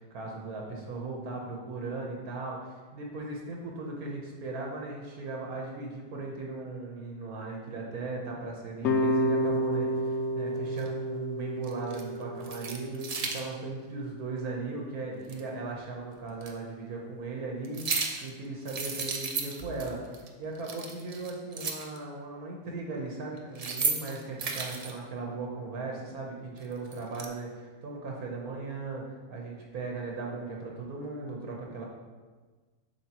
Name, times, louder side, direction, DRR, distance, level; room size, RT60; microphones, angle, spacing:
voice 1, 0.0-31.8, right 3 dB, 80° right, -1 dB, 1.5 m, -38 dB
sound 1, 8.8-13.9, equal, 65° left, 0.7 m, -31 dB
sound 2, 10.8-10.9 11.6-12.0 12.4-13.4 15.3-15.4 16.4-16.5 17.6-18.3 18.6-19.9 20.1-20.3 20.5-22.0 23.4-24.9 26.6-27.3, right 4 dB, 60° right, 0.4 m, -34 dB
7.4 x 6.1 x 2.9 m, 1.4 s
omnidirectional pair, 1.5 m